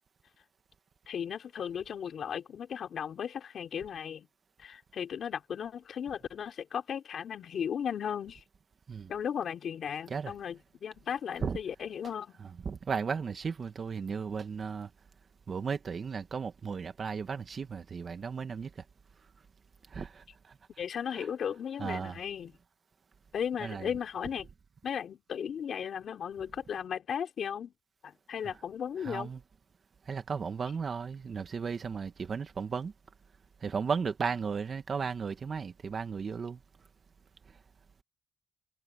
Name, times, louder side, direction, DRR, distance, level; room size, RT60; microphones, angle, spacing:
voice 1, 1.1-4.3 4.6-8.4 9.1-12.3 20.8-22.5 23.3-24.5 24.8-27.7 28.0-29.3, left 8 dB, 55° left, 4.0 m, -36 dB
voice 2, 12.4-14.9 15.5-18.8 19.9-20.6 21.1-21.3 21.8-22.2 23.6-24.0 28.4-28.6 29.0-29.4 30.1-32.9 33.6-36.6 37.5-37.6, right 5 dB, 40° right, 1.9 m, -35 dB
cardioid pair, 105°, 0 cm